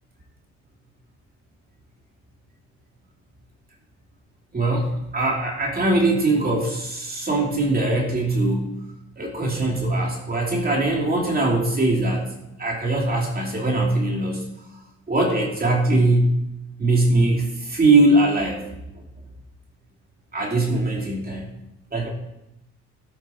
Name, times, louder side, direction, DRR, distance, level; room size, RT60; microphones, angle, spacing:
voice 1, 4.5-8.8 9.2-12.3 12.6-14.5 15.1-16.3 16.8-18.7 20.3-21.4 21.9-22.1, right 2 dB, 30° right, -1 dB, 2.8 m, -21 dB
15.5 x 8.5 x 4.4 m, 0.88 s
cardioid pair, 90°, 30 cm